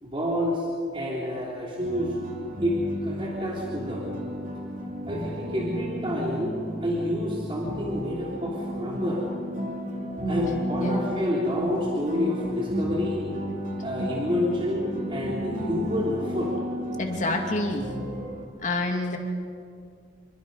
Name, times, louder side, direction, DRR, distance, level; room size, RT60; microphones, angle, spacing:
voice 1, 0.0-0.7 0.9-2.2 2.6-4.1 5.1-6.5 6.8-9.2 10.3-13.2 13.8-16.5, left 1 dB, 30° right, -4 dB, 3.4 m, -28 dB
sound 1, 1.8-18.5, equal, 45° right, 2.9 m, -33 dB
voice 2, 17.0-17.9 18.6-19.2, left 2 dB, 40° left, 2 dB, 2.5 m, -27 dB
28.0 x 23.5 x 5.5 m, 2.2 s
head